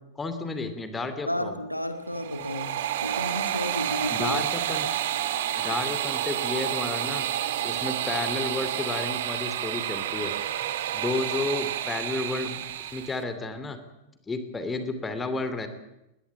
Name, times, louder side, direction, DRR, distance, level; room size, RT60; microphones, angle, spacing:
voice 1, 0.2-1.6 4.1-4.9 5.6-7.3 7.6-10.3 10.9-12.7 12.9-13.8 14.3-15.7, left 3 dB, 15° left, 9 dB, 2.8 m, -31 dB
voice 2, 1.3-4.4, left 1 dB, 90° left, 8 dB, 1.9 m, -32 dB
sound 1, 2.1-13.2, right 11 dB, 55° right, 1.7 m, -29 dB
20.5 x 20.5 x 8.6 m, 0.90 s
figure-of-eight pair, 90°, 0 cm